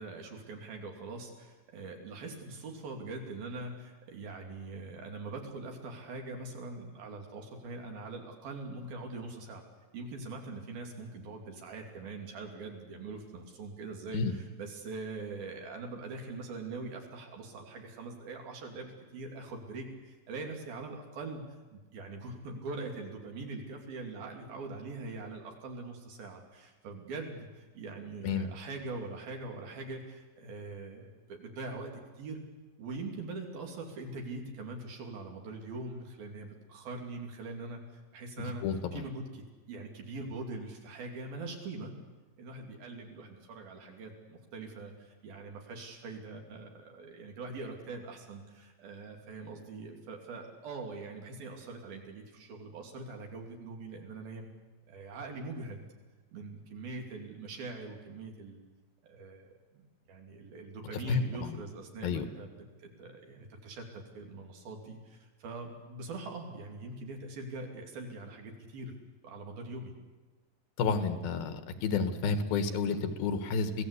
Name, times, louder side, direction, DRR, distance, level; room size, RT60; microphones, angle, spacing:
voice 1, 0.0-9.6 9.9-21.4 21.7-32.4 32.8-38.6 38.9-41.9 42.4-54.5 54.9-55.9 56.3-58.6 59.0-59.8 60.1-68.9 69.2-69.9, right 3 dB, 85° right, 2 dB, 4.8 m, -43 dB
voice 2, 38.4-39.0 61.1-61.6 62.0-62.2 70.8-73.7, left 5 dB, 85° left, 8 dB, 3.4 m, -31 dB
26.5 x 17.5 x 8.4 m, 1.3 s
omnidirectional pair, 4.1 m